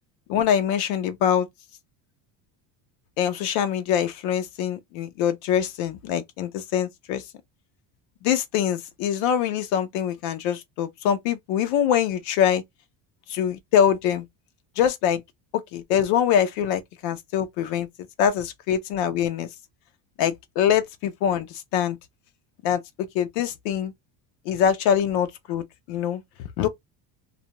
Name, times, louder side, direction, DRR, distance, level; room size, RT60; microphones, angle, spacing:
voice 1, 0.3-1.5 3.2-7.2 8.2-12.6 13.3-14.2 14.8-15.2 15.7-17.9 18.2-19.5 20.2-22.0 22.6-23.9 24.5-26.2 26.6-26.7, left 9 dB, 90° left, 0.7 m, -24 dB
2.5 x 2.2 x 2.9 m
cardioid pair, 135°, 48 cm